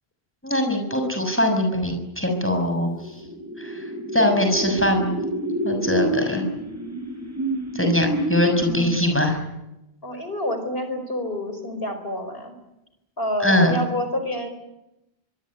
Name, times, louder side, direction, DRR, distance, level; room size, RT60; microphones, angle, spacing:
voice 1, 0.4-2.9 3.6-3.8 4.1-5.1 5.6-6.4 7.7-9.4 13.4-13.8, left 1 dB, 10° left, 5 dB, 6.5 m, -22 dB
sound 1, 2.8-9.3, equal, 15° right, 7.9 m, -28 dB
voice 2, 10.0-12.5 13.2-14.5, left 1 dB, 65° left, 8 dB, 5.1 m, -28 dB
24.0 x 23.5 x 9.9 m, 0.92 s
omnidirectional pair, 1.1 m